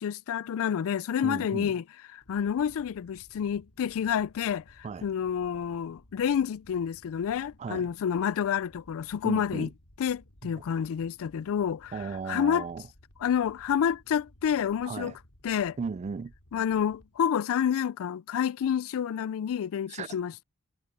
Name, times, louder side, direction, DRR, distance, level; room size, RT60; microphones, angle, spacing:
voice 1, 0.0-1.8 2.1-9.7 10.0-12.7 13.2-15.1 15.4-15.8 16.5-20.3, left 8 dB, 65° left, 0.3 m, -29 dB
voice 2, 1.2-1.7 4.8-5.1 7.6-7.9 9.2-9.7 11.9-12.8 14.8-15.2 15.8-16.3 19.9-20.1, right 5 dB, 30° right, 0.3 m, -35 dB
sound 1, 2.2-17.3, equal, 80° left, 4.0 m, -58 dB
head